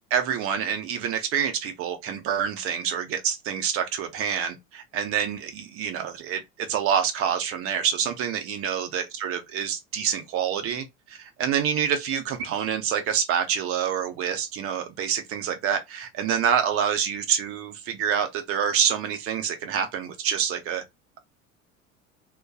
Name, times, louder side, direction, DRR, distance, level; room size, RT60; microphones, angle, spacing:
voice 1, 0.1-20.8, right 8 dB, 35° right, 0.7 m, -27 dB
2.6 x 2.3 x 2.2 m
figure-of-eight pair, 75°, 42 cm